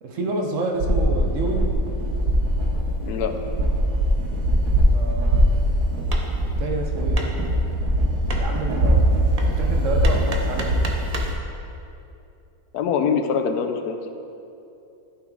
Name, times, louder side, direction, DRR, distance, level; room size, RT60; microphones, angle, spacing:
voice 1, 0.0-1.7 4.9-5.5 6.6-7.3 8.4-10.8, right 2 dB, 60° right, 3 dB, 1.1 m, -29 dB
sound 1, 0.8-11.3, right 1 dB, 90° right, 1.6 m, -22 dB
voice 2, 3.0-3.3 12.7-14.1, left 6 dB, 90° left, 6 dB, 1.2 m, -24 dB
Hammer, 6.1-11.4, right 3 dB, 40° right, 0.6 m, -36 dB
11.0 x 6.0 x 3.8 m, 2.7 s
omnidirectional pair, 1.6 m